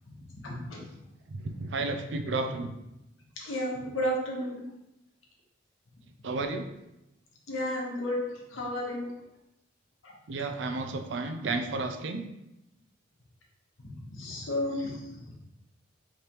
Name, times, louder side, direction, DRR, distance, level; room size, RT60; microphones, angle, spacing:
voice 1, 0.1-0.9 3.4-4.6 7.5-8.2 8.5-9.1 10.0-10.1 14.0-15.2, equal, 80° left, -2 dB, 1.1 m, -33 dB
voice 2, 1.3-2.7 6.2-6.7 10.3-12.3, right 3 dB, 60° right, 6 dB, 0.4 m, -32 dB
5.0 x 3.2 x 2.9 m, 0.89 s
head